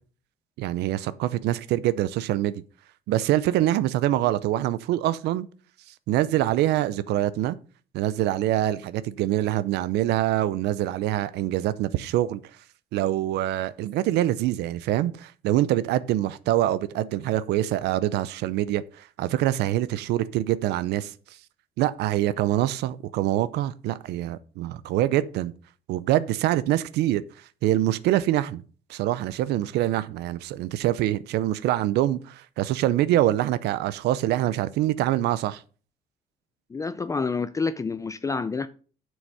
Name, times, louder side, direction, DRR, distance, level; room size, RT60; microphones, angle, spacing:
voice 1, 0.6-2.6 3.1-5.5 6.1-7.6 7.9-12.4 12.9-21.1 21.8-25.5 25.9-27.2 27.6-28.6 28.9-35.6, right 13 dB, 80° right, 0.6 m, -25 dB
voice 2, 36.7-38.7, left 4 dB, 20° left, 0.4 m, -28 dB
7.8 x 6.4 x 5.5 m
cardioid pair, 110°, 17 cm